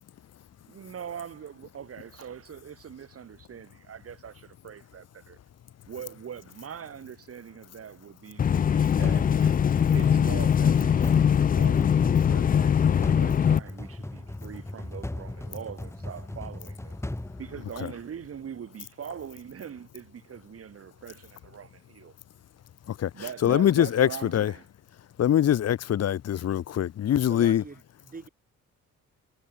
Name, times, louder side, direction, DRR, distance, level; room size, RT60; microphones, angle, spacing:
voice 1, 0.6-5.4 5.8-9.6 9.9-17.0 17.4-22.1 23.1-24.7, right 8 dB, 50° right, 2.7 m, -42 dB
sound 1, 8.4-13.6, left 8 dB, 30° left, 0.4 m, -22 dB
sound 2, 9.0-18.2, left 1 dB, 10° left, 2.8 m, -38 dB
voice 2, 23.4-24.5 25.2-27.6, left 10 dB, 55° left, 1.2 m, -23 dB
voice 3, 27.3-28.3, right 4 dB, 30° right, 4.5 m, -43 dB
cardioid pair, 90°, 30 cm